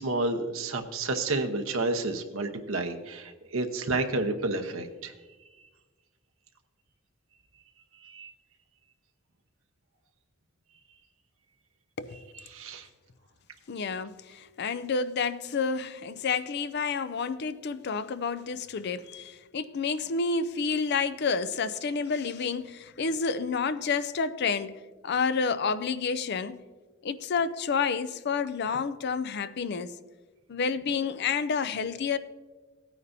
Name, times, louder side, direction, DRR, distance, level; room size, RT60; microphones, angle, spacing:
voice 1, 0.0-5.1 8.0-8.3 12.3-12.9, right 2 dB, 80° right, 1.0 m, -30 dB
voice 2, 13.7-26.6 27.0-29.9 30.5-32.2, left 5 dB, 55° left, 0.5 m, -29 dB
17.0 x 9.4 x 2.7 m
head